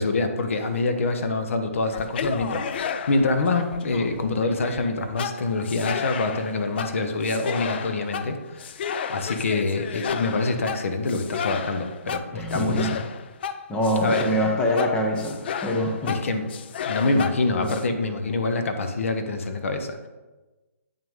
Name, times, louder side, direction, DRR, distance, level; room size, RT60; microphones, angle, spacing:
voice 1, 0.0-8.7 9.1-13.0 14.0-14.2 16.1-16.5 16.8-20.0, left 3 dB, 65° left, 7 dB, 1.0 m, -25 dB
sound 1, 1.9-17.9, left 7 dB, 45° left, 0.5 m, -33 dB
voice 2, 12.3-13.0 13.7-16.3 17.6-17.8, equal, 10° left, 1 dB, 1.0 m, -25 dB
8.7 x 6.1 x 3.7 m, 1.2 s
hypercardioid pair, 150°, 8 cm